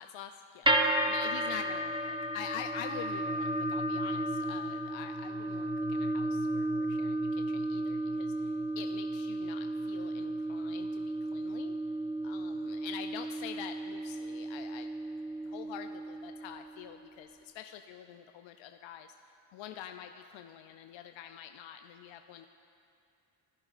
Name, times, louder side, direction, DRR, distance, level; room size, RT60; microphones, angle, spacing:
voice 1, 0.0-11.8 12.2-14.9 15.4-19.1 19.5-22.5, left 10 dB, 70° left, 6 dB, 0.5 m, -46 dB
sound 1, 0.7-16.9, right 1 dB, 10° right, 0.9 m, -33 dB
18.0 x 10.5 x 2.5 m, 2.6 s
cardioid pair, 70°, 47 cm